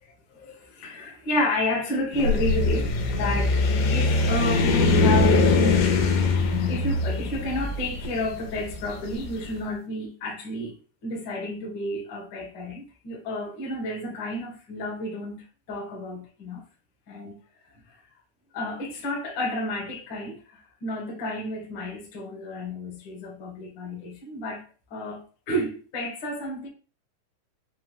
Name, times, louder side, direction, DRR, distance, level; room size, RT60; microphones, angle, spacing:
voice 1, 0.0-6.3 6.7-10.8 11.0-16.6 17.1-17.4 17.9-18.0 18.5-24.6 24.9-26.7, left 1 dB, 55° left, 1.3 m, -31 dB
sound 1, 2.1-9.3, left 3 dB, 80° left, 2.2 m, -22 dB
5.7 x 3.1 x 2.4 m
omnidirectional pair, 4.0 m